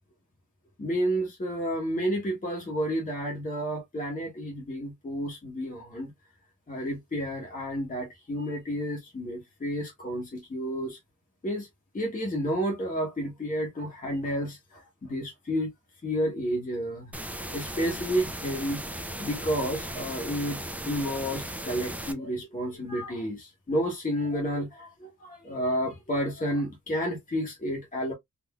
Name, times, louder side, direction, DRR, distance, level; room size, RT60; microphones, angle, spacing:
voice 1, 0.8-6.1 6.7-11.0 11.4-11.7 11.9-15.7 16.0-17.1 17.5-20.6 20.9-28.1, equal, 25° left, 1.0 m, -31 dB
sound 1, 17.1-22.1, right 1 dB, 5° right, 0.4 m, -37 dB
3.7 x 2.6 x 2.2 m
wide cardioid pair, 160°, 30 cm